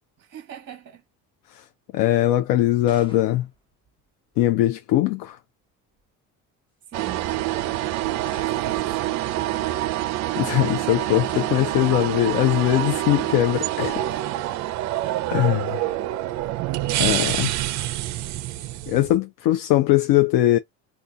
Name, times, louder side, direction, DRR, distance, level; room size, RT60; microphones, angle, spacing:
voice 1, 0.2-1.0 6.9-7.3 8.3-9.0 13.9-14.7 15.4-15.7, right 7 dB, 35° right, 1.0 m, -41 dB
voice 2, 1.9-3.5 4.4-5.4 10.4-14.0 15.3-15.8 17.0-17.5 18.9-20.6, left 14 dB, 80° left, 0.5 m, -21 dB
sound 1, 2.7-4.6 5.6-6.1 6.9-7.0 8.2-9.1 11.3-12.0, left 1 dB, 15° left, 0.8 m, -48 dB
sound 2, 6.9-19.2, right 14 dB, 55° right, 0.5 m, -26 dB
2.7 x 2.3 x 3.7 m
cardioid pair, 150°, 33 cm